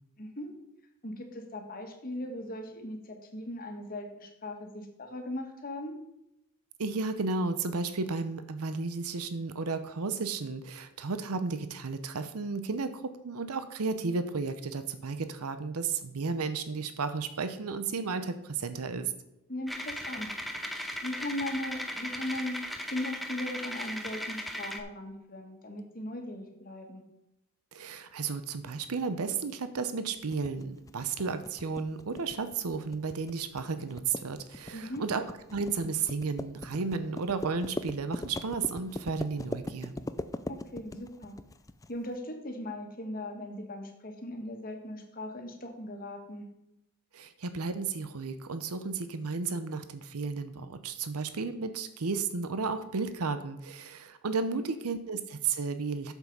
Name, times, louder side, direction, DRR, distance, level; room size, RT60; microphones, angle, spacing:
voice 1, 0.2-0.5 1.0-5.9 19.5-20.3 21.0-27.0 34.7-35.0 40.5-41.3 41.9-46.4 54.5-54.8, left 1 dB, 40° left, 3 dB, 1.6 m, -38 dB
voice 2, 6.8-19.1 27.7-35.2 35.5-39.9 47.1-56.1, right 4 dB, 85° right, 11 dB, 0.7 m, -33 dB
sound 1, 19.7-24.8, equal, ahead, 0.7 m, -37 dB
sound 2, 30.3-41.9, left 2 dB, 15° left, 0.4 m, -40 dB
7.8 x 7.4 x 5.4 m, 0.85 s
head